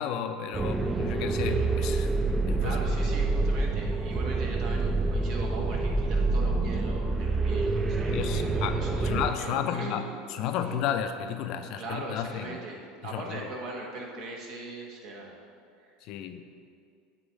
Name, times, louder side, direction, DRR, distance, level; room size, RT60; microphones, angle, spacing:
voice 1, 0.0-2.1 2.5-2.8 8.1-12.6 13.1-13.4 16.0-16.4, left 9 dB, 55° left, 7 dB, 0.4 m, -33 dB
sound 1, 0.5-9.3, right 3 dB, 15° right, 0.4 m, -27 dB
voice 2, 2.6-10.1 11.8-15.4 15.8-15.9, right 2 dB, 55° right, 0 dB, 1.2 m, -39 dB
7.9 x 3.1 x 6.2 m, 2.3 s
hypercardioid pair, 80°, 0 cm